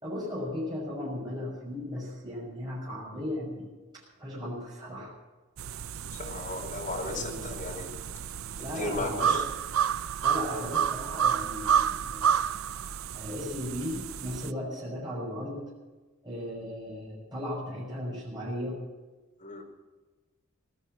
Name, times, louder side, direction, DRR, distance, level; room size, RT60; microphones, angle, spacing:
voice 1, 0.0-5.1 7.0-7.5 8.6-9.4 10.2-12.3 13.1-15.7 16.2-18.8, left 1 dB, 20° right, -6 dB, 6.4 m, -36 dB
sound 1, 5.6-14.5, right 8 dB, 80° right, 0.5 m, -30 dB
voice 2, 6.1-7.9 8.7-9.4 19.4-19.6, left 2 dB, 40° left, 0 dB, 4.8 m, -35 dB
18.0 x 13.0 x 6.1 m, 1.3 s
head